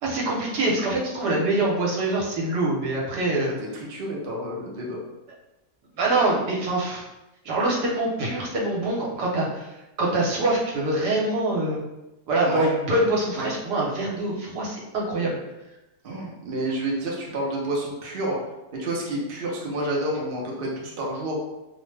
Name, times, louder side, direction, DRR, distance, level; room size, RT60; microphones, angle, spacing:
voice 1, 0.0-3.5 6.0-7.0 7.4-9.7 10.0-11.8 12.3-15.4, right 2 dB, 75° right, -4 dB, 1.3 m, -24 dB
voice 2, 3.6-5.0 12.4-12.7 13.4-13.5 16.0-18.4 18.7-21.4, right 1 dB, 60° right, -3 dB, 0.6 m, -29 dB
2.8 x 2.1 x 3.2 m, 0.99 s
omnidirectional pair, 1.8 m